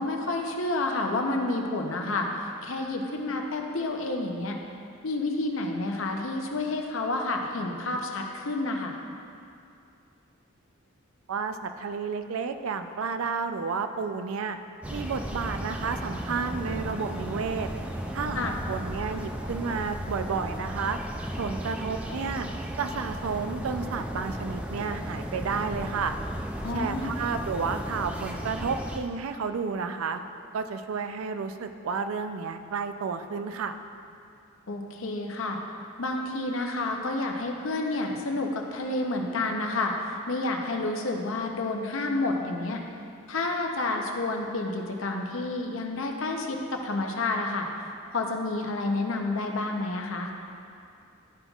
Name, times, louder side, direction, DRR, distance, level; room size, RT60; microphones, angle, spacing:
voice 1, 0.0-4.6 5.0-9.0 18.3-18.5 26.6-27.1 34.7-35.6 36.0-42.8 43.3-47.7 48.1-50.3, left 2 dB, 75° left, 2 dB, 0.7 m, -29 dB
voice 2, 11.3-14.6 14.9-17.7 18.1-21.0 21.4-22.5 22.8-26.1 26.7-30.2 30.5-33.8, right 5 dB, 90° right, 8 dB, 0.4 m, -31 dB
sound 1, 14.8-29.0, right 1 dB, 5° right, 0.3 m, -35 dB
11.5 x 5.3 x 2.4 m, 2.5 s
head